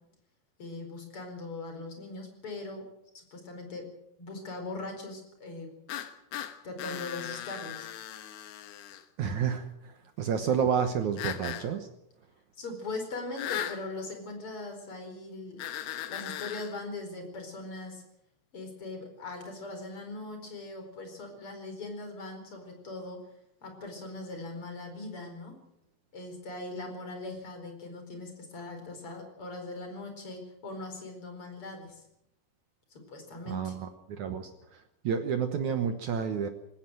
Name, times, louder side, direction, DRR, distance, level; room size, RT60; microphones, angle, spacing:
voice 1, 0.6-2.9 3.1-3.9 4.2-5.7 6.6-7.9 12.6-15.6 16.1-18.0 18.5-23.2 23.6-25.6 26.1-32.0 32.9-33.8, left 2 dB, 30° left, 5 dB, 5.0 m, -40 dB
sound 1, 5.9-9.0 11.2-11.7 13.4-13.8 15.6-16.7, left 11 dB, 70° left, 3.1 m, -37 dB
voice 2, 9.2-11.9 33.5-36.5, right 7 dB, 75° right, 7 dB, 1.7 m, -30 dB
19.5 x 17.5 x 7.7 m, 0.79 s
omnidirectional pair, 5.1 m